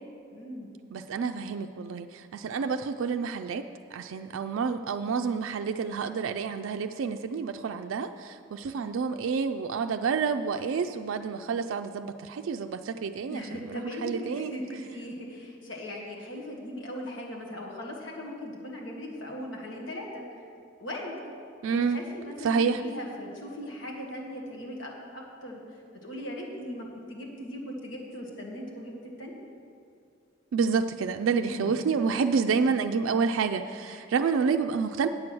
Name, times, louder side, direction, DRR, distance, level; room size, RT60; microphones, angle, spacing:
voice 1, 0.3-0.7 13.3-20.2 20.8-21.2 21.6-25.6 26.0-28.9 29.2-29.3 31.3-32.2 33.9-34.1, left 1 dB, 70° left, -1 dB, 1.7 m, -39 dB
voice 2, 0.9-3.7 3.9-14.5 21.6-22.0 22.4-22.8 30.5-35.1, right 5 dB, 90° right, 7 dB, 0.4 m, -29 dB
8.9 x 7.6 x 6.1 m, 2.3 s
head